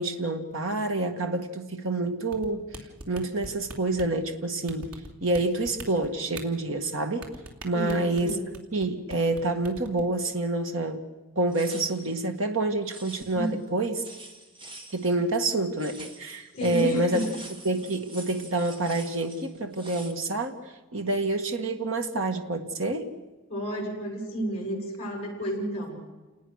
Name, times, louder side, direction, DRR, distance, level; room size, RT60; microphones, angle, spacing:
voice 1, 0.0-2.7 3.1-4.9 5.2-7.3 7.6-8.4 8.7-11.0 11.4-14.0 14.9-17.2 17.6-20.6 20.9-23.1, right 2 dB, 60° right, 5 dB, 1.8 m, -27 dB
sound 1, 2.3-4.2 4.7-5.4 5.6-6.4 7.2-8.8 9.1-9.4 9.6-10.0, right 2 dB, 90° right, 3.0 m, -40 dB
voice 2, 7.7-8.5 13.3-13.6 16.5-17.4 23.5-26.0, right 1 dB, 25° left, -1 dB, 7.9 m, -31 dB
sound 2, 11.5-12.2 12.9-13.6 14.0-15.2 15.8-20.1, right 2 dB, 25° right, 2.0 m, -46 dB
28.5 x 19.5 x 6.6 m, 1.2 s
head